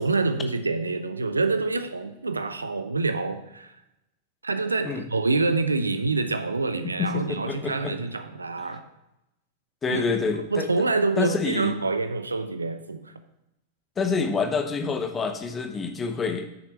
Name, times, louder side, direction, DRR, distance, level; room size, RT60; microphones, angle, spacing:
voice 1, 0.0-3.7 4.4-8.8 9.9-10.0 10.4-13.1, right 3 dB, 80° right, 10 dB, 0.6 m, -26 dB
voice 2, 6.8-8.0 9.8-10.7 11.2-11.7 14.0-16.5, left 5 dB, 20° left, 7 dB, 1.0 m, -27 dB
9.2 x 6.5 x 4.3 m, 0.91 s
figure-of-eight pair, 90°, 0 cm